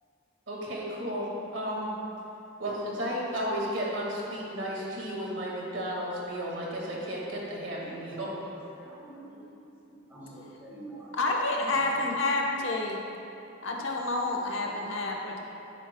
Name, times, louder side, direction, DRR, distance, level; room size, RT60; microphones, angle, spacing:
voice 1, 0.5-1.3 1.5-1.9 2.6-8.3, equal, 65° right, -4 dB, 2.0 m, -33 dB
voice 2, 7.7-8.1 8.7-9.4 10.1-11.1 14.6-14.7, right 1 dB, 10° right, -9 dB, 1.9 m, -47 dB
voice 3, 11.1-13.0 13.6-15.4, left 2 dB, 75° left, -1 dB, 1.1 m, -29 dB
10.5 x 9.7 x 2.3 m, 2.8 s
head